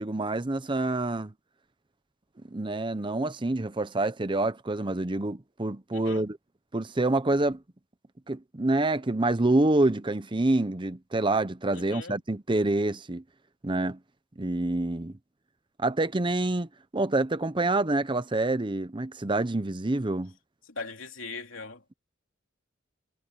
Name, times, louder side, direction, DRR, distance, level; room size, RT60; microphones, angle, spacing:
voice 1, 0.0-1.3 2.5-6.4 6.7-7.6 8.3-13.2 13.6-14.0 14.4-15.1 15.8-16.7 16.9-20.3, right 2 dB, 25° right, 0.7 m, -27 dB
voice 2, 5.9-6.2 11.7-12.2 20.7-21.8, left 4 dB, 70° left, 3.2 m, -40 dB
head